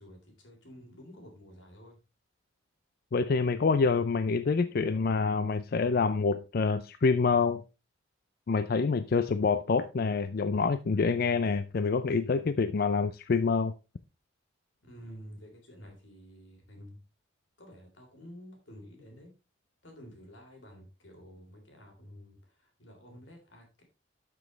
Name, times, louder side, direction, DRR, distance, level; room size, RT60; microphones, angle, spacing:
voice 1, 0.0-2.0 14.8-17.0 17.6-19.3 19.8-23.8, equal, 90° left, 3.7 m, -50 dB
voice 2, 3.1-7.6 8.5-13.7, left 4 dB, 55° left, 0.4 m, -27 dB
12.0 x 6.1 x 3.2 m
head